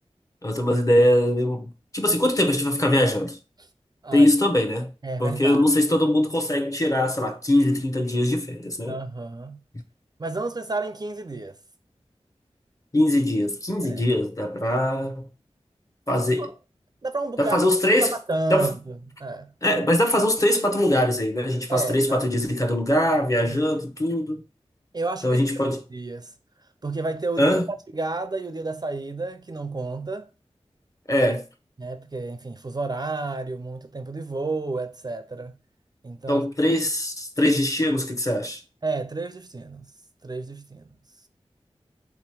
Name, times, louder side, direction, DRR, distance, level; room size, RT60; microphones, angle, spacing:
voice 1, 0.4-3.4 4.1-4.9 5.2-9.0 12.9-15.3 16.1-16.5 17.4-18.1 18.5-18.7 19.6-24.4 25.2-25.8 27.4-27.7 31.1-31.4 36.3-38.6, left 1 dB, 30° left, 0.9 m, -22 dB
voice 2, 5.0-5.6 8.9-9.6 10.2-11.6 13.8-14.0 16.1-16.5 17.0-17.6 17.9-19.5 21.7-22.3 23.5-23.6 24.9-25.4 25.9-26.3 26.8-27.6 27.9-30.3 31.8-35.6 36.0-36.5 38.8-39.9 40.2-40.8, right 3 dB, 40° right, 0.4 m, -31 dB
3.4 x 3.0 x 4.6 m
cardioid pair, 45°, 11 cm